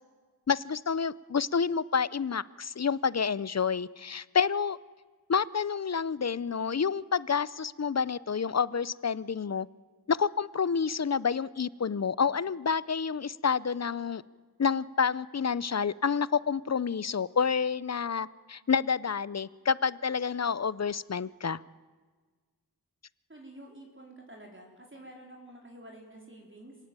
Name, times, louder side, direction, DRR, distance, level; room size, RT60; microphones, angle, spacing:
voice 1, 0.5-4.8 5.3-9.7 10.1-14.2 14.6-21.6, left 6 dB, 40° left, 19 dB, 0.6 m, -29 dB
voice 2, 23.3-26.8, right 1 dB, 30° right, 0 dB, 4.0 m, -49 dB
26.5 x 17.5 x 9.0 m, 1.4 s
wide cardioid pair, 65°, 39 cm